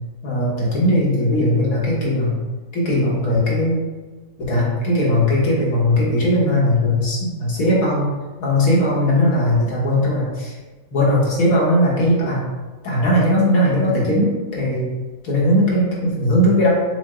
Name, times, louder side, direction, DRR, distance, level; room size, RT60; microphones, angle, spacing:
voice 1, 0.2-2.4 2.7-3.8 4.4-8.1 8.4-10.6 10.9-12.5 12.8-14.9 15.2-16.7, left 1 dB, 85° left, -6 dB, 1.7 m, -18 dB
6.1 x 2.1 x 3.7 m, 1.3 s
omnidirectional pair, 1.4 m